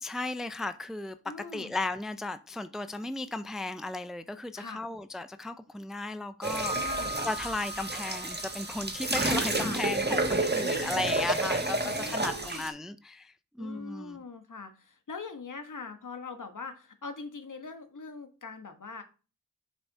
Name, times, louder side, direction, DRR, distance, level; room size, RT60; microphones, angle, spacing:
voice 1, 0.0-6.8 7.2-14.2, left 2 dB, ahead, 11 dB, 0.5 m, -35 dB
voice 2, 1.2-1.7 4.6-4.8 6.7-7.2 9.6-9.8 10.6-11.1 11.8-12.7 13.6-19.0, left 4 dB, 55° left, 7 dB, 1.3 m, -42 dB
sound 1, 6.4-12.7, right 2 dB, 30° right, 1.5 m, -30 dB
Piano, 6.6-9.5, right 1 dB, 25° left, 3.6 m, -39 dB
6.6 x 4.0 x 4.6 m, 0.34 s
cardioid pair, 45°, 36 cm